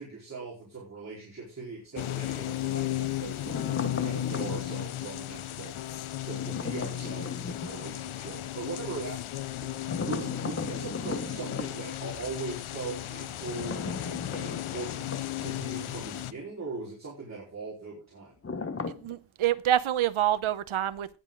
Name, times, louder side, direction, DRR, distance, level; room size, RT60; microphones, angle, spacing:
voice 1, 0.0-5.7 6.2-9.3 9.6-9.7 10.0-18.3, right 4 dB, 35° right, 4.4 m, -40 dB
sound 1, 1.9-16.3, left 14 dB, 85° left, 0.8 m, -35 dB
sound 2, 3.4-4.8 6.3-7.8 9.9-11.7 13.5-15.9 16.1-16.3 18.4-19.2, left 4 dB, 30° left, 1.1 m, -37 dB
voice 2, 19.0-21.2, right 12 dB, 80° right, 0.8 m, -27 dB
18.5 x 7.6 x 3.8 m
wide cardioid pair, 140°, 48 cm